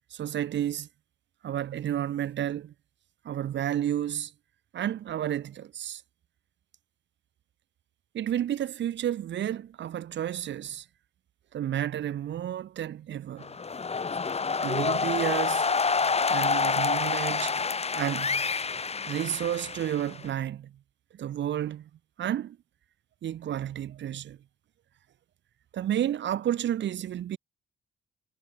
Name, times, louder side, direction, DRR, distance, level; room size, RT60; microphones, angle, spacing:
voice 1, 0.1-0.9 1.4-2.7 3.3-4.3 4.7-6.0 8.1-10.9 11.5-13.5 14.6-15.7 16.3-17.6 17.9-18.4 19.0-20.7 21.1-21.9 22.2-22.6 23.2-24.4 25.7-27.4, right 11 dB, 65° right, 1.7 m, -31 dB
sound 1, 13.4-20.3, left 5 dB, 30° left, 2.7 m, -28 dB
cardioid pair, 90°, 20 cm